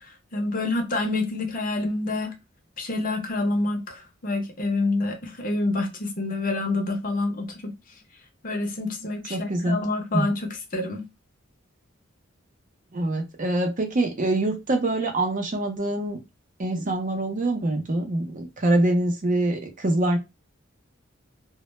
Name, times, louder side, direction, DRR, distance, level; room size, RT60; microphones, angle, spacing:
voice 1, 0.3-2.3 2.8-7.7 8.4-11.0, left 2 dB, 45° left, 0.6 m, -27 dB
voice 2, 9.3-9.8 10.1-10.3 12.9-16.2 16.6-20.2, right 1 dB, 40° right, 0.6 m, -24 dB
2.1 x 2.1 x 3.0 m
head